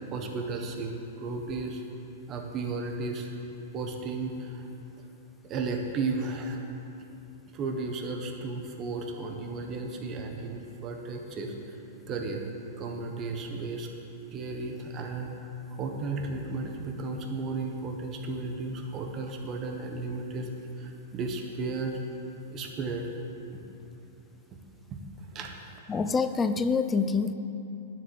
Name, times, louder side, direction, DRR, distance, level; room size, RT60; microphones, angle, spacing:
voice 1, 0.1-1.8 2.3-3.3 3.7-4.7 5.4-6.6 7.5-11.8 12.1-12.4 12.8-13.9 14.3-15.3 15.7-20.5 20.8-22.0 22.5-23.1 25.3-25.5, right 3 dB, 25° right, 3 dB, 1.3 m, -34 dB
voice 2, 25.9-27.3, left 5 dB, 15° left, 11 dB, 0.5 m, -26 dB
9.7 x 7.7 x 8.0 m, 2.8 s
hypercardioid pair, 150°, 0 cm